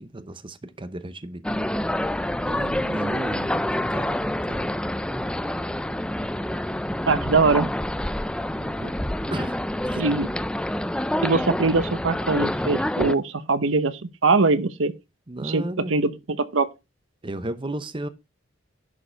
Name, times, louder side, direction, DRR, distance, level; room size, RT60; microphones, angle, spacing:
voice 1, 0.0-1.7 2.4-4.8 8.6-9.0 9.3-10.0 15.3-16.0 17.2-18.1, right 1 dB, 25° right, 0.8 m, -34 dB
sound 1, 1.4-13.1, left 1 dB, 5° left, 0.4 m, -27 dB
voice 2, 7.1-7.7 9.9-10.3 11.2-14.9 15.4-16.1 16.4-16.7, right 3 dB, 90° right, 0.9 m, -22 dB
11.0 x 5.0 x 4.5 m
head